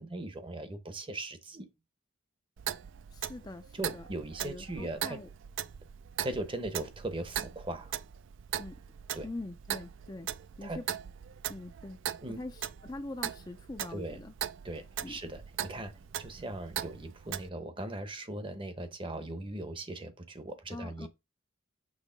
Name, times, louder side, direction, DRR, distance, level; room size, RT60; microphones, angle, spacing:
voice 1, 0.0-1.7 3.7-5.2 6.2-8.0 9.1-9.3 10.6-10.8 12.2-12.4 13.9-14.2 14.6-21.1, right 1 dB, 25° right, 0.7 m, -39 dB
Clock, 2.6-17.5, right 10 dB, 60° right, 0.4 m, -40 dB
voice 2, 3.1-4.0 4.4-5.3 8.6-8.8 9.2-10.3 10.6-10.9 11.5-12.0 12.3-14.3 15.0-15.2 20.7-21.1, left 2 dB, 20° left, 0.4 m, -43 dB
6.4 x 3.0 x 5.0 m
head